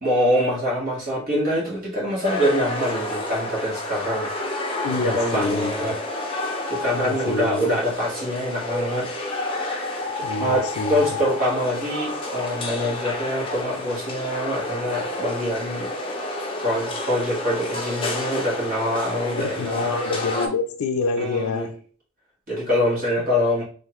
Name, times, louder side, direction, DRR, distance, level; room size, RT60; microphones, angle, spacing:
voice 1, 0.0-4.3 4.9-6.0 6.7-9.1 10.1-15.9 16.6-20.0 21.2-21.7 22.5-23.6, equal, 40° right, 1.9 m, -25 dB
sound 1, 2.2-20.5, left 1 dB, 25° left, 0.7 m, -30 dB
voice 2, 4.8-5.9 6.9-7.7 10.2-11.0 19.4-21.7, left 3 dB, 80° left, 0.4 m, -27 dB
3.7 x 3.2 x 3.0 m
head